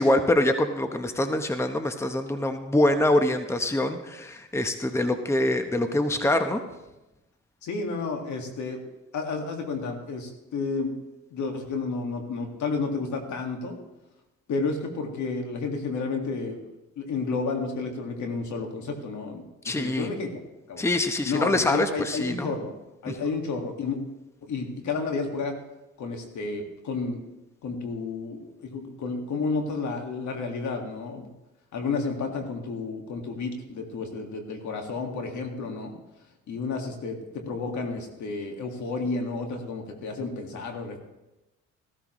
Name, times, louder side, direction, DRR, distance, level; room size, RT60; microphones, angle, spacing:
voice 1, 0.0-6.6 19.6-20.1 20.8-22.5 23.1-23.2, left 1 dB, 10° left, 7 dB, 0.9 m, -24 dB
voice 2, 7.6-8.8 9.1-11.0 11.3-13.8 14.5-20.4 20.7-20.8 21.2-22.8 23.0-24.0 24.4-25.6 26.0-27.2 27.6-31.3 31.7-36.0 36.5-41.0, left 4 dB, 70° left, 4 dB, 1.9 m, -31 dB
14.5 x 13.5 x 3.1 m, 0.99 s
cardioid pair, 90°, 30 cm